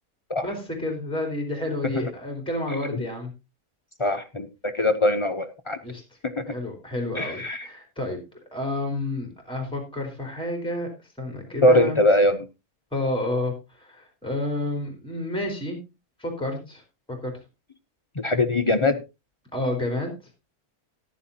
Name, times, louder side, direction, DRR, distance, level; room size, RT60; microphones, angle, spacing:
voice 1, 0.4-3.3 5.8-6.0 6.5-8.2 8.5-10.9 11.2-12.0 12.9-15.8 16.2-16.8 17.1-17.3 19.5-20.1, left 1 dB, 5° left, 3 dB, 3.5 m, -30 dB
voice 2, 4.0-5.8 6.2-6.5 7.2-7.7 11.6-12.4 18.2-19.0, left 1 dB, 45° left, 7 dB, 0.4 m, -21 dB
14.0 x 10.5 x 2.8 m, 0.26 s
omnidirectional pair, 1.6 m